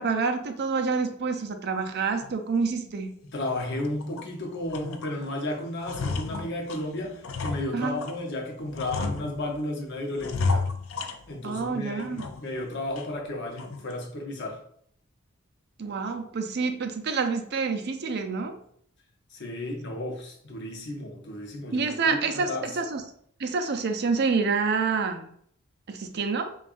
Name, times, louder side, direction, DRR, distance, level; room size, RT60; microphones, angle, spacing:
voice 1, 0.0-3.2 7.7-8.0 11.4-12.2 15.8-18.6 21.7-23.0 23.4-25.3 25.9-26.5, right 4 dB, 50° right, 6 dB, 0.5 m, -27 dB
sound 1, 2.2-2.4 2.9-3.0 3.4-4.3 4.7-5.3 5.6-8.2 8.7-9.7 10.2-11.6 12.0-12.6 13.0-13.1 13.6-13.9, left 3 dB, 75° left, 0.4 m, -33 dB
voice 2, 3.3-10.7 11.3-14.6 19.3-22.7, left 1 dB, 55° left, 1 dB, 0.9 m, -33 dB
5.2 x 2.4 x 2.5 m, 0.64 s
head